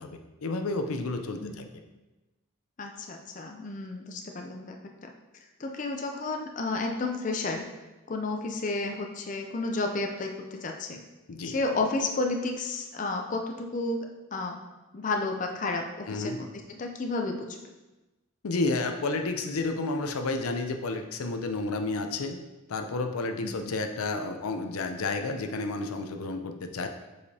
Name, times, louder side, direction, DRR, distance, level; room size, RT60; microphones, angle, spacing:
voice 1, 0.0-1.6 11.3-11.6 16.1-16.4 18.4-22.4 22.7-26.9, left 3 dB, 85° left, 6 dB, 0.5 m, -31 dB
voice 2, 2.8-4.8 5.0-5.1 5.6-7.7 8.1-11.0 11.4-14.0 14.3-14.6 14.9-17.6 23.4-23.7, left 3 dB, 35° left, 3 dB, 0.4 m, -32 dB
6.9 x 4.9 x 2.8 m, 1.1 s
head